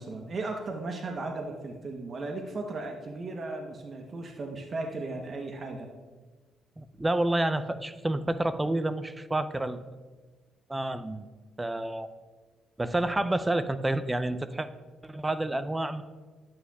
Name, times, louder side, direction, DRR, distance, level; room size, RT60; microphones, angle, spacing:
voice 1, 0.0-5.9, right 2 dB, 45° right, 3 dB, 0.8 m, -36 dB
voice 2, 6.8-9.8 10.7-11.2 11.6-12.1 12.8-14.7 15.0-16.0, right 1 dB, 15° right, 12 dB, 0.5 m, -29 dB
11.0 x 8.6 x 2.3 m, 1.3 s
cardioid pair, 90°, 0 cm